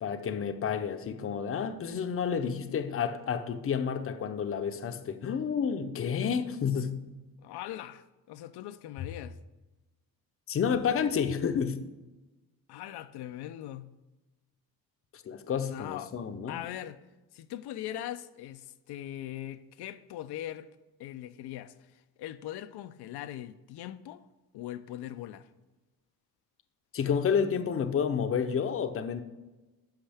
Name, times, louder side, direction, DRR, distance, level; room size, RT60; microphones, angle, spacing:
voice 1, 0.0-7.0 10.5-11.8 15.1-16.6 26.9-29.2, left 7 dB, 35° left, 0.6 m, -30 dB
voice 2, 7.4-9.4 12.7-13.9 15.6-16.1 16.5-17.0 17.3-20.7 21.0-24.2 24.5-25.5, left 12 dB, 85° left, 0.5 m, -41 dB
11.5 x 5.5 x 3.4 m
cardioid pair, 140°, 38 cm